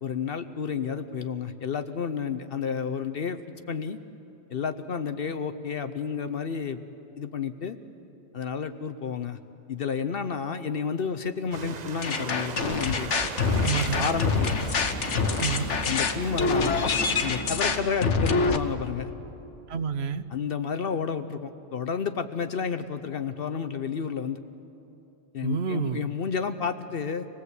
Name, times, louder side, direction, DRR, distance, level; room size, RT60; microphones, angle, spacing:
voice 1, 0.0-3.4 3.7-4.0 4.5-6.8 7.2-7.8 8.3-9.4 9.7-13.1 14.0-14.6 15.9-16.8 17.2-19.1 20.3-24.4 25.3-27.3, left 6 dB, 55° left, 10 dB, 0.9 m, -31 dB
sound 1, 11.5-17.2, right 5 dB, 40° right, 0.8 m, -40 dB
sound 2, 12.0-18.6, left 4 dB, 80° left, 1.4 m, -26 dB
sound 3, 13.4-17.8, equal, 15° left, 2.8 m, -36 dB
voice 2, 13.6-14.1 15.4-15.7 19.7-20.2 25.4-26.1, right 6 dB, 65° right, 12 dB, 1.1 m, -29 dB
27.0 x 18.5 x 8.2 m, 3.0 s
omnidirectional pair, 1.2 m